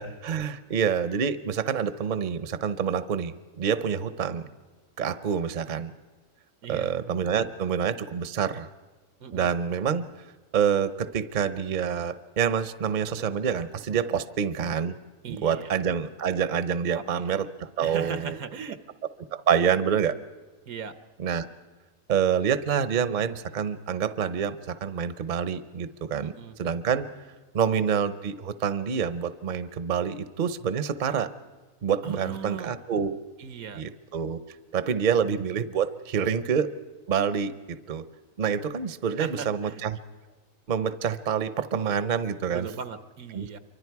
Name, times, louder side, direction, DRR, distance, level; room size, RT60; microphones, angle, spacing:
voice 1, 0.0-4.5 5.0-5.9 6.7-8.7 9.3-10.0 10.5-14.9 15.3-18.4 19.3-20.1 21.2-21.5 22.1-26.3 26.6-27.1 27.5-31.3 31.8-33.2 33.8-34.4 34.7-36.7 37.1-38.0 38.4-40.0 40.7-42.7 43.3-43.5, right 7 dB, 40° right, 13 dB, 0.7 m, -27 dB
voice 2, 6.6-6.9 9.2-9.5 15.2-15.8 16.9-17.4 17.8-18.8 20.7-20.9 26.2-26.6 32.0-32.7 33.4-33.8 39.2-39.8 42.5-43.6, right 7 dB, 90° right, 11 dB, 1.5 m, -38 dB
28.0 x 24.5 x 4.7 m, 1.3 s
omnidirectional pair, 1.5 m